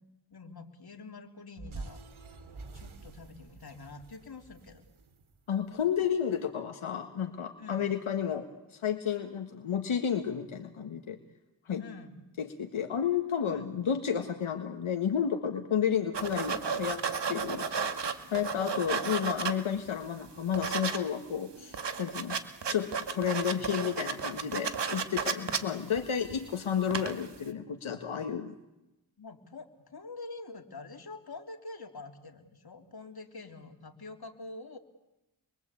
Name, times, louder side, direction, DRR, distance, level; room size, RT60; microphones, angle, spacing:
voice 1, 0.3-2.0 2.7-4.8 7.6-7.8 11.8-12.2 13.5-13.7 18.7-19.0 25.3-25.7 29.2-34.8, left 3 dB, 50° left, 4 dB, 3.6 m, -46 dB
sound 1, 1.6-6.0, right 3 dB, 75° right, 3.2 m, -47 dB
voice 2, 5.5-11.2 11.7-11.8 12.4-17.0 17.3-17.7 18.3-22.4 22.7-28.5, left 8 dB, 75° left, 5 dB, 1.9 m, -31 dB
sound 2, 16.1-19.9 20.3-21.0 21.3-21.4 21.6-26.5 26.8-27.3, right 6 dB, 55° right, 2.2 m, -33 dB
28.0 x 23.0 x 8.5 m, 0.95 s
cardioid pair, 70°, 48 cm